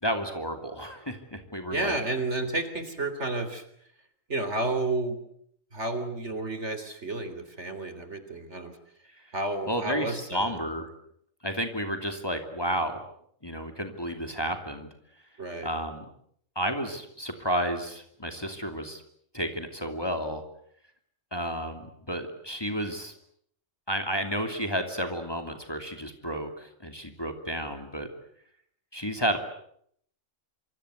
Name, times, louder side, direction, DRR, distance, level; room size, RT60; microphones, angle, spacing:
voice 1, 0.0-2.0 9.7-10.9 11.4-13.0 13.4-14.9 15.6-16.0 16.6-19.0 19.3-20.4 21.3-23.1 23.9-28.1 28.9-29.4, equal, 20° left, 5 dB, 2.8 m, -31 dB
voice 2, 1.7-3.6 4.3-5.2 5.7-8.7 9.3-10.6 15.4-15.7, right 2 dB, 55° right, 10 dB, 3.9 m, -31 dB
26.5 x 25.5 x 8.2 m, 0.69 s
omnidirectional pair, 1.4 m